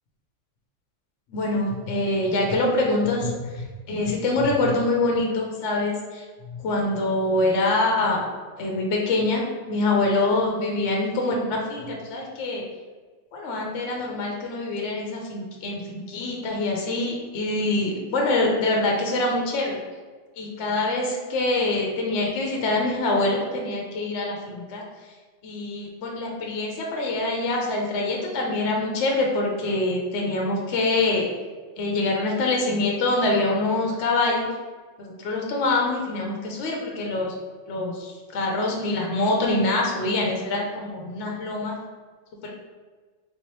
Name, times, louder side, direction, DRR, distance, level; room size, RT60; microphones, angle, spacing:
voice 1, 1.3-8.3 8.6-12.6 13.3-19.8 20.4-24.8 25.4-31.3 31.8-34.5 35.0-37.3 37.7-41.8 42.4-42.5, left 2 dB, 70° left, 0 dB, 0.9 m, -25 dB
3.5 x 2.9 x 3.1 m, 1.4 s
omnidirectional pair, 1.3 m